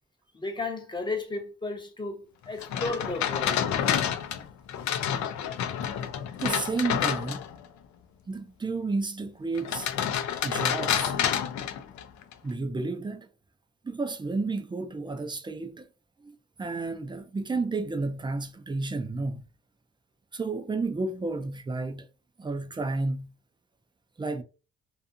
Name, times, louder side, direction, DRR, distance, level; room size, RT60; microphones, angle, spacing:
voice 1, 0.3-3.7, left 3 dB, 15° left, 0.7 m, -34 dB
sound 1, 2.6-7.7 9.6-12.3, left 9 dB, 70° left, 0.5 m, -29 dB
voice 2, 6.4-7.4 8.3-9.9 10.4-11.1 12.4-13.3 13.8-15.9 16.2-19.4 20.3-22.1 22.4-23.3 24.2-24.4, right 3 dB, 15° right, 0.4 m, -31 dB
2.5 x 2.4 x 2.5 m
cardioid pair, 90°, 30 cm